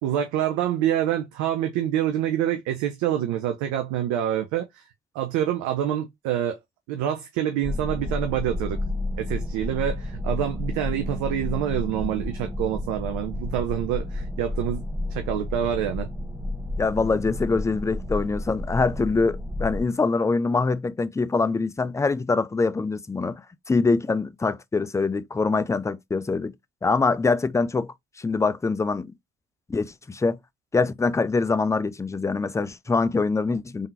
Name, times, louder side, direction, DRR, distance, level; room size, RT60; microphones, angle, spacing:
voice 1, 0.0-4.8 5.1-6.6 6.9-8.8 9.2-14.8 15.1-16.1, right 10 dB, 65° right, 0.6 m, -26 dB
sound 1, 7.6-19.9, left 1 dB, 5° right, 0.8 m, -31 dB
voice 2, 16.8-23.4 23.7-26.5 26.8-27.9 28.2-29.1 29.7-30.4 30.7-33.9, left 4 dB, 10° left, 0.4 m, -24 dB
3.6 x 3.5 x 2.6 m
figure-of-eight pair, 40°, 32 cm